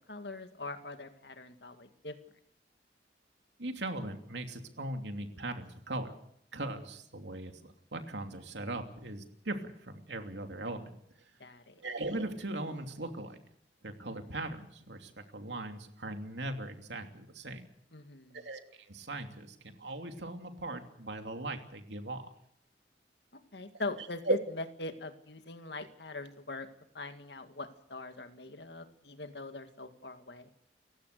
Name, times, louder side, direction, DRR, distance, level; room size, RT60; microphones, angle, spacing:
voice 1, 0.1-2.2 11.4-11.7 17.9-18.4 23.3-24.4 24.8-26.7 26.9-30.5, left 2 dB, 70° left, 8 dB, 2.1 m, -42 dB
voice 2, 3.6-6.1 6.5-10.9 11.8-13.4 13.8-17.6 18.3-18.6 18.9-22.3 24.2-24.4, right 2 dB, 75° right, 5 dB, 2.9 m, -38 dB
29.0 x 16.0 x 6.8 m, 0.73 s
head